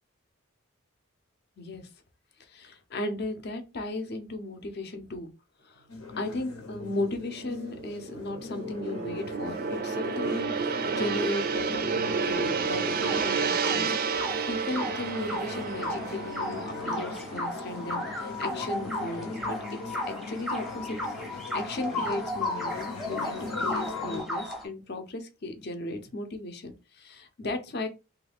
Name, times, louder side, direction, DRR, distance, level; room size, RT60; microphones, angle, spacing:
voice 1, 1.6-1.9 2.5-5.3 5.6-5.8 6.2-19.6 19.8-21.0 21.3-27.9, left 2 dB, 50° left, 6 dB, 0.6 m, -36 dB
sound 1, 5.9-24.2, left 4 dB, 90° left, 1.0 m, -41 dB
Gong, 6.4-18.9 19.2-19.5, right 5 dB, 45° right, 0.3 m, -31 dB
sound 2, 12.8-24.6, left 1 dB, ahead, 0.6 m, -35 dB
3.2 x 2.3 x 3.4 m, 0.28 s
head